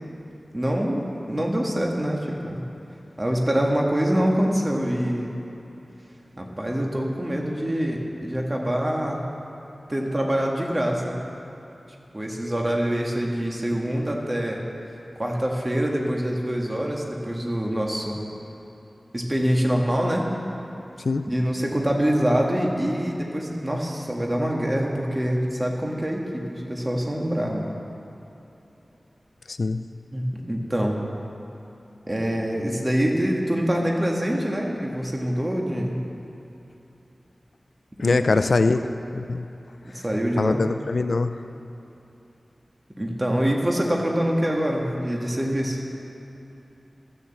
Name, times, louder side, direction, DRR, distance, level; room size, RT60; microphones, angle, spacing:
voice 1, 0.5-2.6 3.2-5.4 6.4-9.2 9.9-11.1 12.1-14.6 15.2-18.2 19.1-20.3 21.3-27.7 30.1-31.0 32.1-36.0 38.0-38.3 38.7-38.9 40.0-40.6 43.0-45.8, equal, 25° right, -1 dB, 1.7 m, -25 dB
voice 2, 29.5-29.8 38.0-38.8 39.1-39.5 40.4-41.4, left 3 dB, 70° left, 10 dB, 0.4 m, -22 dB
13.0 x 7.1 x 7.8 m, 3.0 s
wide cardioid pair, 70°, 0 cm